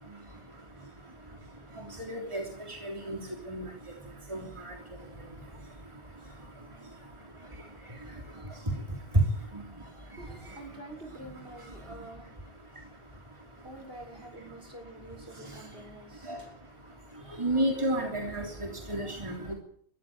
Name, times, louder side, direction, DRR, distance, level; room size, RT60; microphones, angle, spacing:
voice 1, 2.0-2.4 2.7-3.2 3.5-3.6 4.3-4.7 16.3-16.4 17.4-19.5, right 1 dB, 25° right, 1 dB, 3.4 m, -32 dB
voice 2, 10.2-12.3 12.7-12.8 13.6-16.5 17.2-17.5, right 1 dB, 55° right, 2 dB, 6.8 m, -47 dB
23.0 x 14.5 x 8.7 m, 0.62 s
omnidirectional pair, 1.2 m